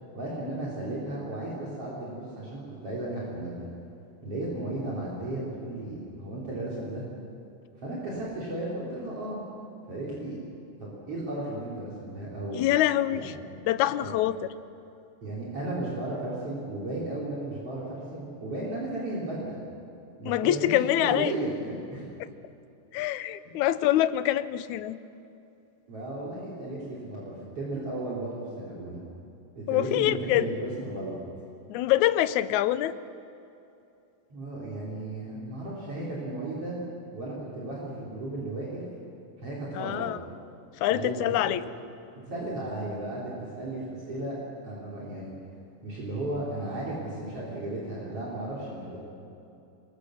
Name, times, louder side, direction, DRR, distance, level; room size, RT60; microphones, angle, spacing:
voice 1, 0.1-3.7 4.2-7.0 7.8-9.4 9.9-10.4 10.8-12.6 13.1-13.3 14.0-14.1 15.2-19.6 20.2-22.1 23.4-23.6 25.9-29.0 29.6-31.1 34.3-36.8 37.1-38.8 39.4-40.1 40.9-41.6 42.2-44.4 44.6-45.4 45.8-49.0, right 2 dB, 50° right, -6 dB, 4.6 m, -35 dB
voice 2, 12.5-13.3 13.7-14.4 20.3-21.3 22.9-25.0 29.7-30.5 31.7-32.9 39.7-40.2 40.8-41.6, left 13 dB, 75° left, 14 dB, 2.1 m, -25 dB
26.0 x 23.0 x 6.5 m, 2.7 s
omnidirectional pair, 3.5 m